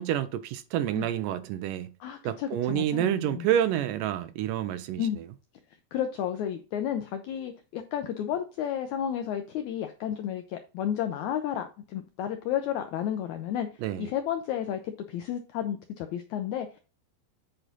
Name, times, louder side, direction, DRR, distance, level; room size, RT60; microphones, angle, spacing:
voice 1, 0.0-1.9 2.2-5.2 13.8-14.1, right 11 dB, 80° right, 2.1 m, -28 dB
voice 2, 2.0-3.5 5.0-5.2 5.9-16.7, left 10 dB, 90° left, 1.6 m, -32 dB
8.0 x 4.2 x 4.0 m
omnidirectional pair, 4.1 m